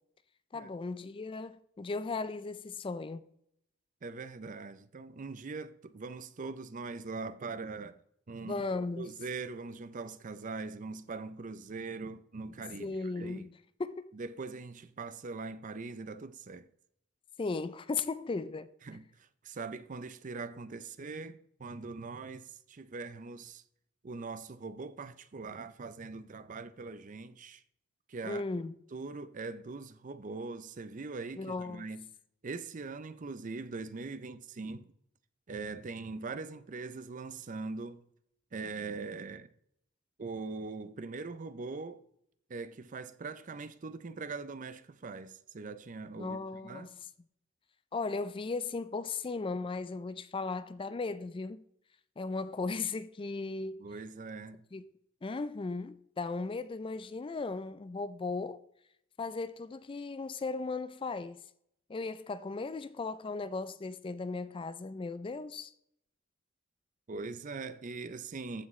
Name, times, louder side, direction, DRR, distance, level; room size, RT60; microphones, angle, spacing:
voice 1, 0.5-3.3 8.4-9.1 12.8-13.5 13.8-14.1 17.4-18.7 28.2-28.7 31.4-31.8 46.2-47.0 47.9-51.6 52.2-53.8 54.7-54.8 55.2-58.6 59.2-61.4 61.9-65.7, left 3 dB, 25° left, 0.3 m, -36 dB
voice 2, 4.0-8.0 8.3-8.7 9.0-13.5 14.1-16.7 18.8-23.6 24.0-27.6 28.1-28.4 28.9-32.1 32.4-34.9 35.5-38.1 38.5-39.5 40.2-42.0 42.5-46.9 53.8-54.7 67.1-68.7, right 4 dB, 40° right, 0.5 m, -42 dB
14.5 x 6.0 x 3.2 m
head